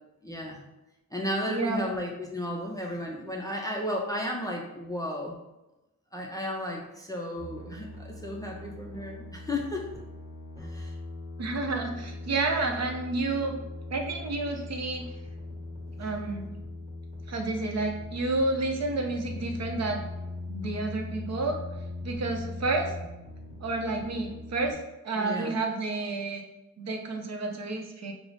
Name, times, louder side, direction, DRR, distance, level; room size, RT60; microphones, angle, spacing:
voice 1, 0.2-0.6 1.1-5.4 6.1-9.9 10.6-11.0 25.2-25.6, left 1 dB, 10° left, -1 dB, 0.4 m, -34 dB
voice 2, 1.5-1.9 11.4-13.6 13.9-15.1 16.0-16.5 17.3-20.0 20.5-21.6 22.0-22.9 23.6-24.8 25.0-26.4 26.8-28.1, right 3 dB, 55° right, 3 dB, 0.6 m, -30 dB
sound 1, 7.4-24.7, left 2 dB, 15° right, 1.3 m, -40 dB
4.6 x 2.0 x 3.8 m, 0.96 s
wide cardioid pair, 150°, 32 cm